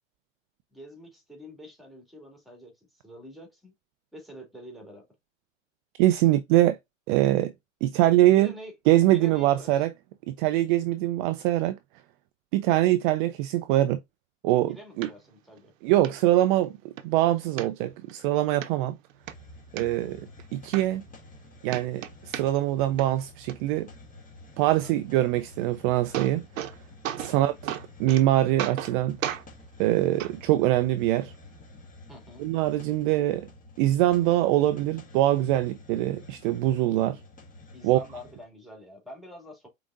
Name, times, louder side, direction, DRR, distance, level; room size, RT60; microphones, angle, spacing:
voice 1, 0.7-3.7 4.1-5.1 8.2-8.7 9.1-9.8 14.5-15.7 24.7-24.9 27.2-27.5 32.1-32.5 37.7-39.7, equal, ahead, 2.3 m, -46 dB
voice 2, 6.0-6.8 7.1-7.5 7.8-8.5 8.9-9.9 10.3-11.8 12.5-14.0 14.4-15.1 15.8-19.0 19.7-20.2 20.5-21.0 21.6-23.9 24.6-26.4 27.1-27.7 28.0-29.2 29.8-31.3 32.4-33.5 33.8-37.2 37.8-38.0, right 14 dB, 40° right, 0.4 m, -23 dB
sound 1, 15.0-15.1 15.6-15.7 16.0-16.1 16.6-17.1 17.6-18.2 18.6-18.7 19.1-19.8 20.4-20.5 20.7-21.4 21.7-22.7 23.0-23.5 25.6-25.7 25.9-26.8 27.0-27.4 27.7-28.2 28.6-29.0 29.2-29.4 30.2-30.3 31.2-31.3, right 11 dB, 75° right, 0.8 m, -34 dB
Hiss, 19.2-38.4, left 2 dB, 20° left, 1.7 m, -50 dB
5.1 x 3.8 x 2.4 m
hypercardioid pair, 110°, 40 cm